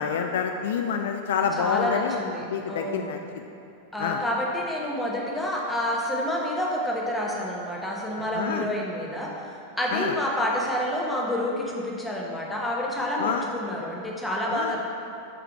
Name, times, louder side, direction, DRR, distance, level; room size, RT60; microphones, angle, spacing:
voice 1, 0.0-2.2 2.5-3.4 4.0-4.2 8.3-8.7 9.9-10.1 13.2-13.5 14.5-14.8, left 7 dB, 60° left, 5 dB, 0.3 m, -27 dB
voice 2, 1.6-3.2 3.9-9.3 9.8-14.8, left 1 dB, 5° left, -3 dB, 1.0 m, -28 dB
6.2 x 4.8 x 4.6 m, 2.6 s
figure-of-eight pair, 90°, 0 cm